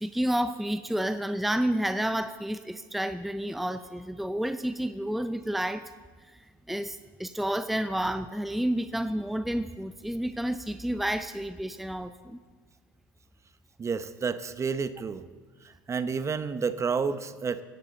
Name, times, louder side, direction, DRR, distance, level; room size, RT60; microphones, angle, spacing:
voice 1, 0.0-5.8 6.7-12.4, right 1 dB, ahead, 10 dB, 0.6 m, -30 dB
voice 2, 13.8-15.3 15.9-17.6, right 5 dB, 30° right, 13 dB, 0.9 m, -30 dB
17.5 x 16.0 x 3.9 m, 1.4 s
hypercardioid pair, 70°, 11 cm